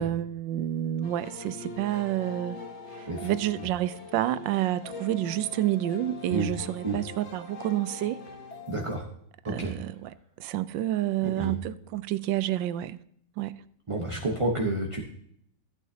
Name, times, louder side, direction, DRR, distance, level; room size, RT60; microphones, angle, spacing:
voice 1, 0.0-2.6 2.9-8.2 9.4-10.1 10.4-13.0 13.4-13.6, right 13 dB, 85° right, 1.3 m, -29 dB
sound 1, 1.0-9.0, left 3 dB, 40° left, 1.7 m, -43 dB
voice 2, 8.7-9.0 9.4-9.7 11.4-11.6 13.9-15.0, right 2 dB, 25° right, 0.8 m, -29 dB
15.0 x 9.3 x 2.8 m
omnidirectional pair, 2.0 m